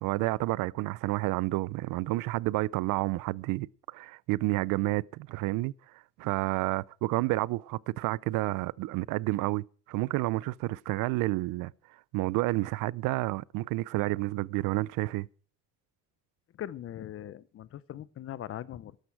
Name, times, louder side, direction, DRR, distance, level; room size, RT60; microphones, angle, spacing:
voice 1, 0.0-5.7 6.2-11.7 12.1-15.3, right 20 dB, 70° right, 0.5 m, -30 dB
voice 2, 16.5-19.0, left 11 dB, 40° left, 0.7 m, -40 dB
12.5 x 11.5 x 4.6 m
cardioid pair, 115°, 34 cm